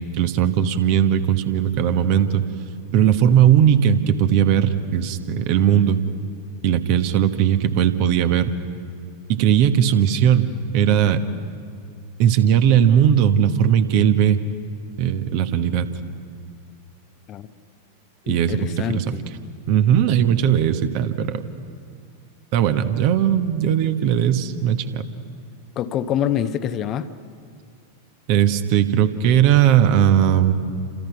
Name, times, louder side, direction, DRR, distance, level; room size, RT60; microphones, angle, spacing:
voice 1, 0.2-2.4 2.9-6.0 6.6-8.5 9.3-11.2 12.2-14.4 15.0-15.9 18.3-19.2 19.7-21.4 22.5-25.0 28.3-30.5, right 9 dB, 45° right, 9 dB, 1.4 m, -18 dB
voice 2, 18.2-19.2 25.8-27.1, left 10 dB, 35° left, 11 dB, 0.9 m, -26 dB
29.0 x 27.0 x 6.0 m, 2.2 s
figure-of-eight pair, 90°, 0 cm